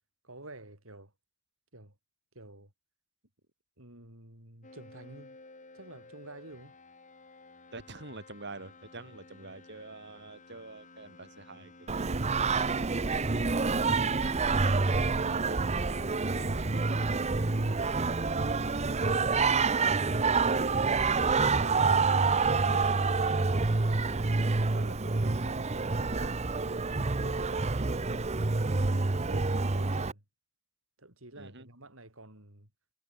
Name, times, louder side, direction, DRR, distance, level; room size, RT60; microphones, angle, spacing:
voice 1, 0.2-1.1 1.7-1.9 2.3-2.7 3.8-5.4 5.7-6.8 20.2-21.0 21.5-23.5 24.1-26.5 27.0-27.9 28.5-30.2 31.0-32.7, right 2 dB, 75° right, 7.4 m, -48 dB
sound 1, 4.6-24.2, left 2 dB, 40° left, 6.4 m, -54 dB
voice 2, 7.7-12.2 14.1-14.2 14.6-15.8 16.3-16.9 27.7-28.0 31.4-31.7, right 2 dB, 60° right, 7.6 m, -47 dB
Singing, 11.9-30.1, right 4 dB, 30° right, 0.8 m, -27 dB
head